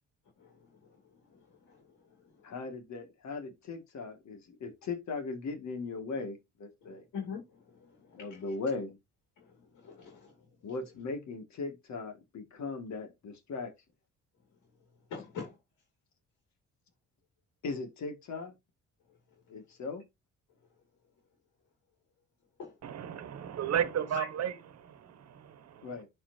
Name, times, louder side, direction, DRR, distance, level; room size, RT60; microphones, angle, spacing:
voice 1, 0.4-0.8 1.3-1.4 1.7-1.8 6.8-8.4 9.4-10.3 15.1-15.6 22.6-22.7 24.2-24.3, left 6 dB, 85° left, 2.8 m, -44 dB
voice 2, 2.4-7.0 8.1-9.0 10.6-13.7 17.6-18.5 19.5-20.0 25.8-26.1, left 3 dB, 65° left, 2.2 m, -38 dB
voice 3, 22.8-26.0, right 9 dB, 60° right, 1.2 m, -34 dB
11.5 x 4.4 x 2.7 m
cardioid pair, 90°, 30 cm